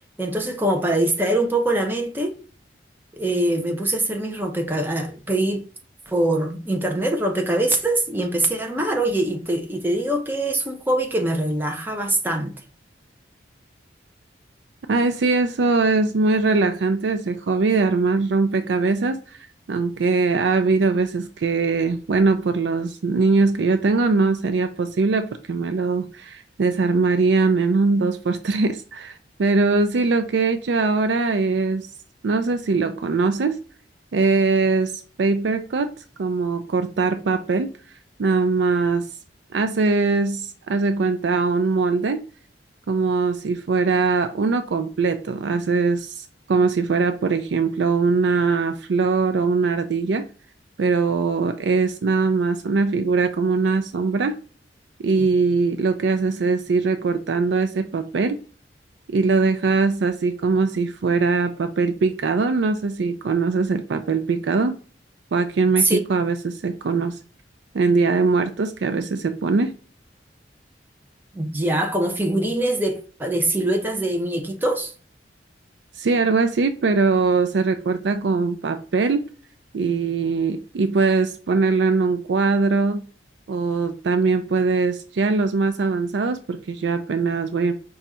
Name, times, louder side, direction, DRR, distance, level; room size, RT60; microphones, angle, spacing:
voice 1, 0.2-2.4 3.2-5.6 6.1-12.5 65.8-66.0 71.3-74.9, right 1 dB, 10° right, 0.6 m, -23 dB
voice 2, 14.9-19.4 19.7-31.9 32.2-33.6 34.1-34.9 35.2-35.9 36.2-37.7 38.2-39.1 39.5-42.2 42.9-50.3 50.8-54.4 55.0-58.4 59.1-64.7 65.3-67.2 67.7-69.7 76.0-79.3 79.7-83.0 83.5-87.7, right 4 dB, 75° right, 0.4 m, -21 dB
5.0 x 2.3 x 4.2 m
head